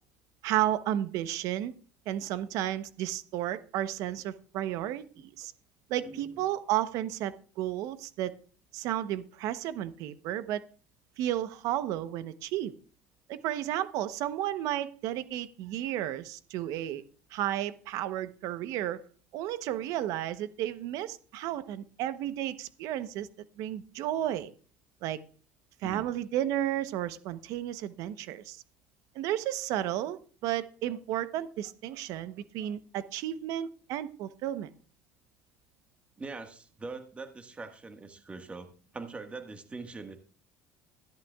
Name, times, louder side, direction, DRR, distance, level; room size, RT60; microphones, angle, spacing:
voice 1, 0.4-1.7 2.1-5.5 5.9-8.3 8.7-10.6 11.2-12.7 13.3-17.0 17.3-19.0 19.3-23.3 23.6-24.5 25.0-25.2 25.8-28.6 29.1-34.7, right 12 dB, 70° right, 13 dB, 0.9 m, -33 dB
voice 2, 25.8-26.1 36.2-40.2, right 3 dB, 20° right, 6 dB, 1.6 m, -42 dB
13.5 x 11.0 x 2.4 m, 0.41 s
supercardioid pair, 100°, 6 cm